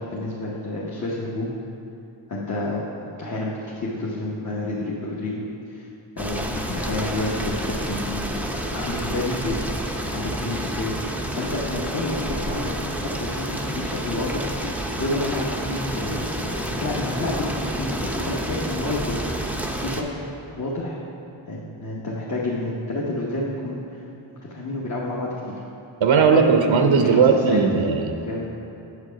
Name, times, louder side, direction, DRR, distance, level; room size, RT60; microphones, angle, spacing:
voice 1, 0.0-1.5 2.3-2.8 3.2-5.9 6.2-11.0 11.3-20.2 20.6-21.0 21.5-23.8 24.5-25.6 26.3-27.7 28.3-28.4, left 2 dB, 40° left, -5 dB, 1.0 m, -29 dB
sound 1, 6.2-20.0, right 1 dB, 5° right, 0.5 m, -29 dB
voice 2, 26.0-28.1, right 5 dB, 70° right, 5 dB, 0.7 m, -17 dB
8.1 x 6.6 x 5.1 m, 2.8 s
wide cardioid pair, 110°, 48 cm